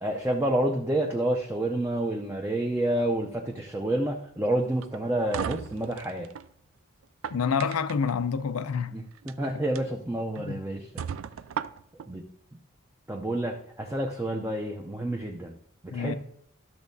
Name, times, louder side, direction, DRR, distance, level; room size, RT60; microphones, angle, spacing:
voice 1, 0.0-6.3 8.9-10.9 12.1-12.2 13.1-15.6 15.9-16.1, right 1 dB, 10° right, 0.5 m, -29 dB
sound 1, 4.8-6.5 7.0-8.1 9.1-9.3 9.8-9.9 10.4-10.5 11.0-12.1, right 8 dB, 70° right, 0.3 m, -36 dB
voice 2, 7.3-9.0 9.5-9.6 10.4-10.6 15.9-16.1, left 6 dB, 85° left, 0.5 m, -28 dB
12.5 x 7.1 x 2.7 m
head